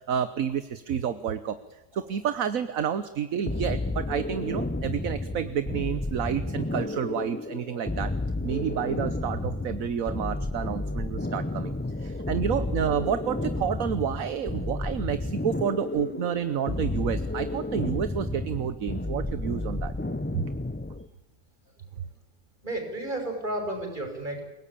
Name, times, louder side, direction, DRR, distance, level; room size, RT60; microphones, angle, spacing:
voice 1, 0.0-1.6 1.9-8.1 8.4-11.7 12.0-19.9 20.3-20.5 22.0-22.1, right 8 dB, 60° right, 12 dB, 1.4 m, -29 dB
sound 1, 3.5-21.1, left 2 dB, 15° left, 0.4 m, -31 dB
voice 2, 22.6-24.4, right 1 dB, 30° right, 4 dB, 6.2 m, -33 dB
29.0 x 18.0 x 8.7 m, 1.1 s
omnidirectional pair, 1.7 m